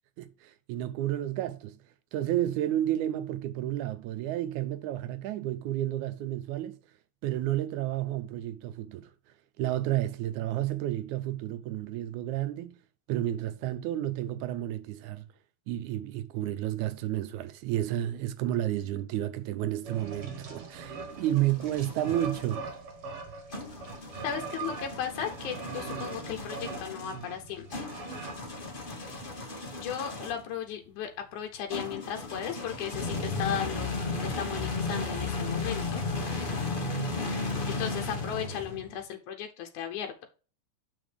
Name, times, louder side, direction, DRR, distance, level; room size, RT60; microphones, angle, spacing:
voice 1, 0.2-1.8 2.1-6.8 7.2-9.1 9.6-12.8 13.1-15.3 15.7-22.7, right 13 dB, 85° right, 2.2 m, -31 dB
sound 1, 19.8-29.3, right 5 dB, 55° right, 1.8 m, -42 dB
sound 2, 20.8-22.6 23.5-30.5 31.7-39.0, left 3 dB, 55° left, 0.5 m, -35 dB
voice 2, 24.2-27.8 29.8-33.9 34.2-36.0 37.7-40.3, left 9 dB, 85° left, 2.3 m, -36 dB
7.4 x 6.2 x 3.4 m
omnidirectional pair, 3.4 m